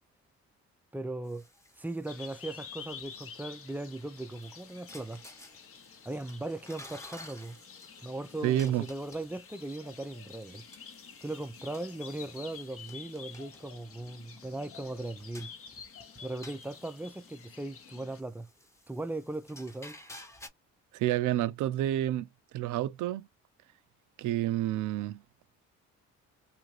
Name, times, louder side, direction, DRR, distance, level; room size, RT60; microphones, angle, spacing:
voice 1, 0.9-1.4 1.8-5.2 6.0-7.6 8.0-10.6 11.2-15.5 16.2-18.5 18.9-20.0, right 2 dB, 5° right, 0.4 m, -38 dB
sound 1, 1.2-20.5, left 1 dB, 10° left, 0.8 m, -54 dB
Birds in the wood, 2.1-18.2, left 7 dB, 50° left, 0.7 m, -50 dB
voice 2, 8.4-8.8 20.9-22.3 22.5-23.3 24.2-25.2, right 13 dB, 80° right, 0.5 m, -29 dB
2.7 x 2.5 x 3.0 m
cardioid pair, 90°, 30 cm